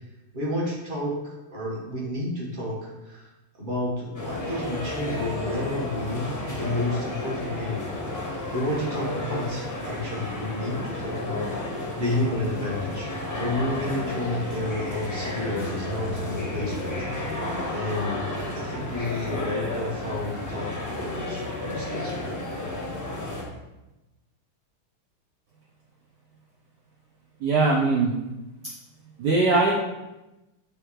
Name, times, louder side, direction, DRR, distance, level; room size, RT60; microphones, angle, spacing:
voice 1, 0.3-3.3 3.6-7.8 8.5-11.5 12.0-13.1 13.4-16.9 17.7-18.2 18.5-22.4, left 1 dB, 25° right, -4 dB, 1.5 m, -30 dB
sound 1, 4.1-23.4, left 1 dB, 15° left, 0.6 m, -32 dB
voice 2, 27.4-28.1 29.2-29.7, right 3 dB, 65° right, -3 dB, 1.2 m, -20 dB
8.6 x 3.5 x 3.2 m, 1.0 s
omnidirectional pair, 2.2 m